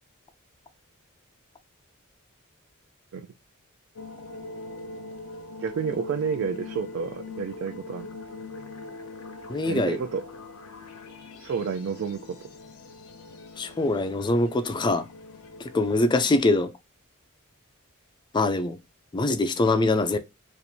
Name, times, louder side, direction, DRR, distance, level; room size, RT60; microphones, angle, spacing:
sound 1, 4.0-16.4, left 3 dB, 85° left, 0.7 m, -42 dB
voice 1, 5.6-8.1 9.6-10.3 11.4-12.4, right 6 dB, 60° right, 0.3 m, -30 dB
voice 2, 9.5-10.0 13.6-15.0 15.7-16.7 18.3-18.8 19.1-20.2, left 2 dB, 20° left, 0.3 m, -23 dB
2.7 x 2.5 x 4.1 m
head